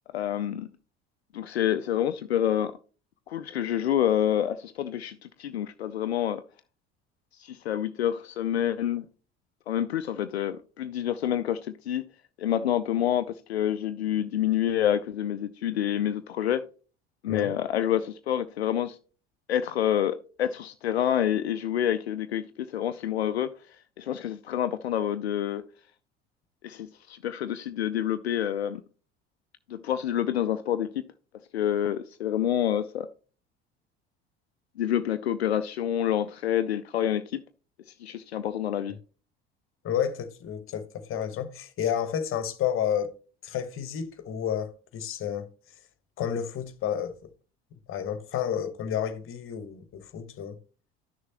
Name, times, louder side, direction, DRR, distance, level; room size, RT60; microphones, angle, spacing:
voice 1, 0.1-0.7 1.3-2.7 3.3-6.4 7.4-9.1 9.7-12.0 12.4-16.6 17.2-19.0 19.5-23.5 24.0-25.6 26.6-28.8 29.7-31.0 31.5-33.1 34.8-37.4 37.9-39.0, left 10 dB, 80° left, 0.5 m, -28 dB
voice 2, 39.8-43.1 43.4-45.5 46.2-47.2 47.9-50.6, left 9 dB, 40° left, 1.2 m, -30 dB
11.0 x 6.5 x 2.9 m
figure-of-eight pair, 60°, 31 cm